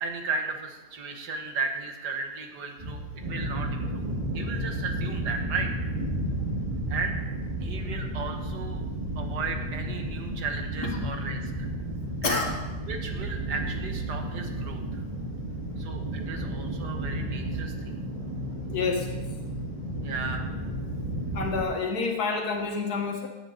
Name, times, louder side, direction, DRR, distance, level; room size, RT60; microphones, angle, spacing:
voice 1, 0.0-3.0 3.3-4.1 4.3-5.7 6.9-7.1 7.6-8.8 9.2-11.7 12.2-12.5 12.9-15.0 15.8-17.9 20.0-20.5, right 4 dB, 90° right, 4 dB, 1.9 m, -35 dB
sound 1, 2.8-21.6, right 1 dB, 25° right, 2.0 m, -32 dB
voice 2, 18.7-19.2 21.3-23.3, left 4 dB, 70° left, 1 dB, 2.1 m, -28 dB
16.5 x 8.9 x 4.0 m, 1.1 s
omnidirectional pair, 1.7 m